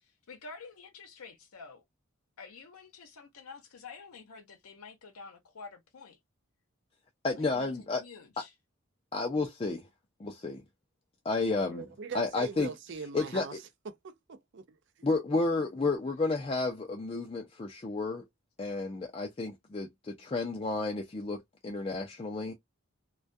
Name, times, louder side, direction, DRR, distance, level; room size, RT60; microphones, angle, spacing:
voice 1, 0.0-1.8 2.4-6.2 7.4-8.5 11.4-11.6, left 4 dB, 85° left, 0.7 m, -49 dB
voice 2, 7.2-8.0 9.1-9.8 10.2-10.6 11.2-11.8 12.1-12.7 13.1-13.5 15.0-18.2 18.6-22.5, left 3 dB, 25° left, 0.4 m, -31 dB
voice 3, 11.6-13.6 13.8-15.1, right 5 dB, 55° right, 0.4 m, -42 dB
2.2 x 2.2 x 2.5 m
head